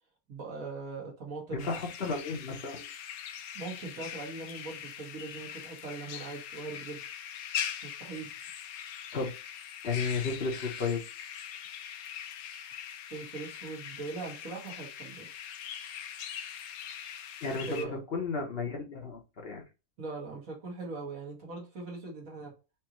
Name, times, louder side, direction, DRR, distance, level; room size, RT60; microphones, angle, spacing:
voice 1, 0.3-1.7 3.5-7.0 7.8-8.3 13.1-15.3 17.7-18.0 20.0-22.5, right 3 dB, 70° right, -2 dB, 2.0 m, -40 dB
voice 2, 1.5-2.8 9.1-9.3 9.8-11.0 17.4-19.6, left 4 dB, 50° left, 1 dB, 1.0 m, -33 dB
sound 1, 1.6-17.8, left 9 dB, 85° left, 1.1 m, -42 dB
4.5 x 2.7 x 3.0 m, 0.28 s
omnidirectional pair, 1.5 m